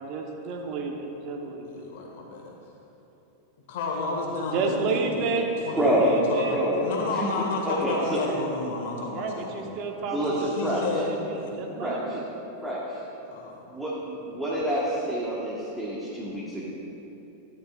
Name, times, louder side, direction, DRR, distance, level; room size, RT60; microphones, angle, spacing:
voice 1, 0.0-1.7 4.5-5.5 6.0-6.6 9.1-12.2, right 4 dB, 40° right, 2 dB, 1.2 m, -31 dB
voice 2, 1.6-2.7 3.7-5.3 5.6-6.4 6.8-9.6 10.2-11.5 13.3-13.7, left 3 dB, 55° left, -1 dB, 2.0 m, -31 dB
voice 3, 5.7-6.2 6.5-6.8 7.1-8.2 10.1-10.8 11.8-12.2 12.6-13.0 13.7-16.7, equal, 5° right, -7 dB, 1.6 m, -27 dB
14.0 x 10.5 x 2.6 m, 3.0 s
figure-of-eight pair, 90°, 0 cm